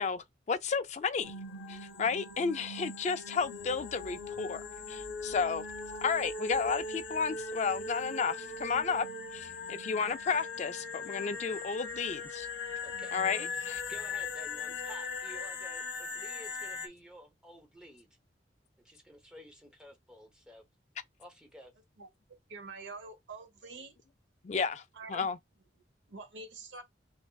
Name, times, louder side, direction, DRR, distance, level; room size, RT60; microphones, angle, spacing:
voice 1, 0.0-1.3 1.7-5.7 6.0-9.1 9.3-12.5 13.1-13.8 24.4-24.8 25.1-25.4, left 5 dB, 40° left, 0.3 m, -32 dB
sound 1, 1.2-16.9, left 3 dB, 85° left, 0.8 m, -40 dB
voice 2, 12.8-13.1 13.5-18.1 18.8-20.6 21.2-21.7, equal, 5° right, 0.9 m, -52 dB
voice 3, 22.5-24.0 25.0-25.3 26.1-26.8, right 3 dB, 85° right, 1.0 m, -46 dB
5.9 x 2.1 x 2.3 m
head